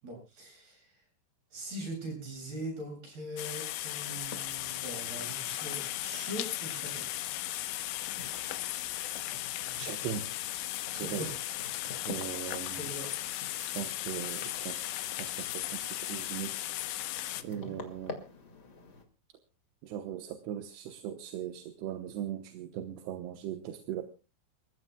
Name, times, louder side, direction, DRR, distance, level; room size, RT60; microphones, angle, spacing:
voice 1, 0.0-1.0 1.5-7.1 10.9-11.4 12.3-13.1 17.5-17.8, right 1 dB, 55° right, 1 dB, 9.7 m, -42 dB
sound 1, 3.4-17.4, left 15 dB, 85° left, 3.2 m, -36 dB
sound 2, 3.9-19.0, left 4 dB, 35° left, 1.7 m, -50 dB
voice 2, 9.8-10.3 10.9-11.2 12.1-12.8 13.6-14.9 15.2-16.6 17.4-18.2 19.8-24.0, right 10 dB, 75° right, 7 dB, 3.0 m, -39 dB
28.5 x 15.0 x 2.3 m, 0.32 s
omnidirectional pair, 5.1 m